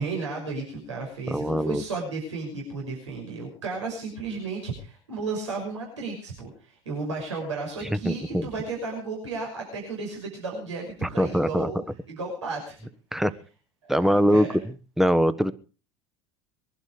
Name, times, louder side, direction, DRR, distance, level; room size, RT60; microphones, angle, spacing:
voice 1, 0.0-11.8 12.1-12.8 13.8-14.6, right 3 dB, 80° right, -1 dB, 5.9 m, -33 dB
voice 2, 1.3-1.8 7.9-8.4 11.0-11.7 13.1-13.3 13.9-14.5 15.0-15.5, equal, ahead, 13 dB, 1.2 m, -22 dB
22.0 x 12.0 x 5.0 m, 0.37 s
figure-of-eight pair, 70°, 15 cm